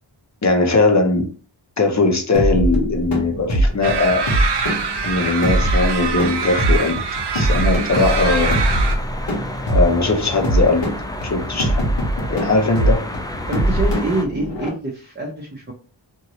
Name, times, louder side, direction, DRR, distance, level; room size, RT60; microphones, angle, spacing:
voice 1, 0.4-1.3 1.8-4.2 5.0-7.0 7.3-8.6 9.7-10.9 11.3-11.8 12.3-13.0, left 3 dB, 35° left, 0.9 m, -19 dB
sound 1, 2.3-14.7, right 1 dB, 65° left, 1.1 m, -22 dB
sound 2, 3.8-9.0, right 5 dB, 60° right, 0.5 m, -24 dB
sound 3, 7.9-14.2, left 1 dB, 10° left, 0.4 m, -31 dB
voice 2, 13.5-15.7, right 2 dB, 25° right, 0.8 m, -25 dB
2.8 x 2.6 x 3.0 m
wide cardioid pair, 45°, 47 cm